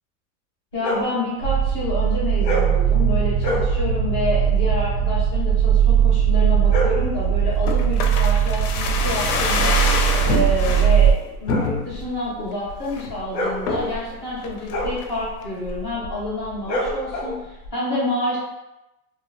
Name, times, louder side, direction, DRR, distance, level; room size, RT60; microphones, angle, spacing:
voice 1, 0.7-9.8 10.2-18.4, left 1 dB, 20° left, -7 dB, 0.4 m, -28 dB
sound 1, 0.8-1.2 2.4-2.8 3.4-3.7 6.4-7.1 9.7-17.7, left 1 dB, 90° left, 0.9 m, -29 dB
sound 2, 1.4-11.1, right 8 dB, 45° right, 0.4 m, -19 dB
sound 3, 7.7-10.9 11.5-12.1 12.5-12.6 12.9-13.2 13.7-14.0 14.4-15.1 15.4-15.5, left 4 dB, 70° left, 0.5 m, -25 dB
2.3 x 2.1 x 2.9 m, 0.97 s
supercardioid pair, 160°, 48 cm